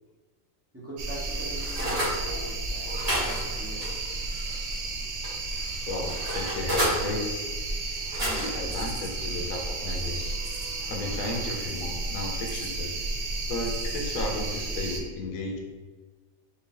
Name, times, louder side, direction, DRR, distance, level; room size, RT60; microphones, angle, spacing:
voice 1, 0.7-4.0 7.7-7.9, right 1 dB, 10° right, -8 dB, 0.9 m, -42 dB
sound 1, 1.0-15.0, right 2 dB, 65° right, 0.4 m, -33 dB
sound 2, 1.1-2.2 2.8-4.8 5.2-7.0 7.9-8.8 9.3-9.5, equal, 40° right, 1.6 m, -32 dB
voice 2, 5.9-7.5 8.2-10.4 10.9-12.9 13.5-15.6, left 2 dB, 90° left, 1 dB, 1.1 m, -34 dB
3.9 x 2.8 x 3.7 m, 1.4 s
omnidirectional pair, 1.4 m